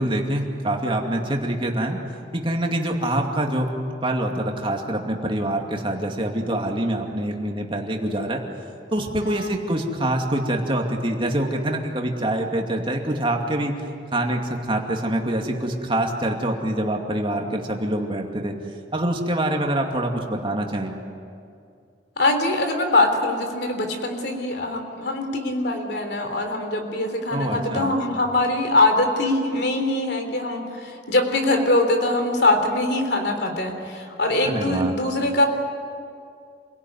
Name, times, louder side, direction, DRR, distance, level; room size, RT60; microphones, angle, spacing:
voice 1, 0.0-2.0 2.3-3.7 4.0-8.4 8.9-13.7 14.1-18.5 18.9-20.9 27.3-28.0 34.4-34.9, right 1 dB, 30° right, 1 dB, 2.5 m, -25 dB
voice 2, 22.2-35.5, left 2 dB, 65° left, 5 dB, 3.5 m, -22 dB
28.0 x 17.5 x 9.6 m, 2.4 s
head